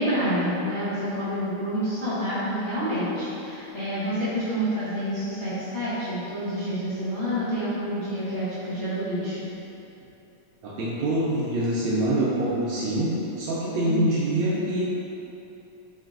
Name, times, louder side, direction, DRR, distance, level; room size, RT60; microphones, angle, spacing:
voice 1, 0.0-9.5 13.8-14.2, equal, 50° left, -15 dB, 0.9 m, -28 dB
voice 2, 10.6-14.8, right 1 dB, 75° right, -6 dB, 1.1 m, -25 dB
4.6 x 3.2 x 2.4 m, 2.9 s
omnidirectional pair, 2.4 m